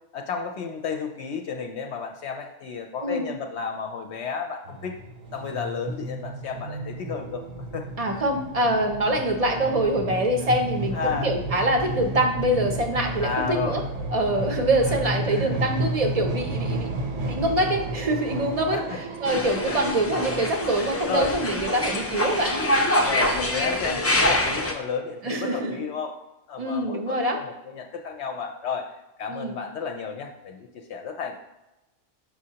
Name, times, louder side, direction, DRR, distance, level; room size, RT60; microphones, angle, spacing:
voice 1, 0.1-5.0 5.3-7.4 7.7-7.9 10.4-10.5 10.9-11.3 13.2-13.8 15.3-15.5 18.7-19.0 19.7-19.9 21.1-21.3 23.0-26.1 26.5-28.9 29.2-31.4, left 5 dB, 70° left, 3 dB, 0.8 m, -32 dB
sound 1, 4.7-20.5, right 2 dB, 75° right, 1.1 m, -32 dB
voice 2, 8.0-13.8 14.1-16.9 17.2-18.8 19.2-22.6 25.2-25.8 26.6-27.4 29.3-29.5, right 1 dB, 40° right, 4 dB, 0.6 m, -24 dB
sound 2, 19.3-24.7, left 1 dB, 20° left, 0.4 m, -25 dB
6.3 x 5.7 x 2.8 m, 0.96 s
omnidirectional pair, 1.3 m